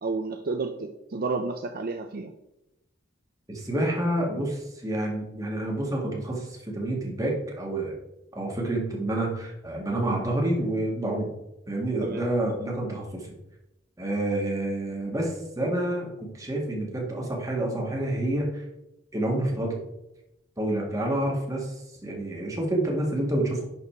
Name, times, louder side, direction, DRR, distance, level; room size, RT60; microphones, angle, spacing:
voice 1, 0.0-2.3 12.0-12.2, right 3 dB, 50° right, 6 dB, 0.5 m, -31 dB
voice 2, 3.5-8.0 8.4-11.3 11.7-13.3 14.0-18.6 19.1-19.8 20.6-21.7 22.0-23.6, right 1 dB, 20° right, -1 dB, 1.9 m, -28 dB
11.0 x 4.1 x 4.5 m, 0.88 s
head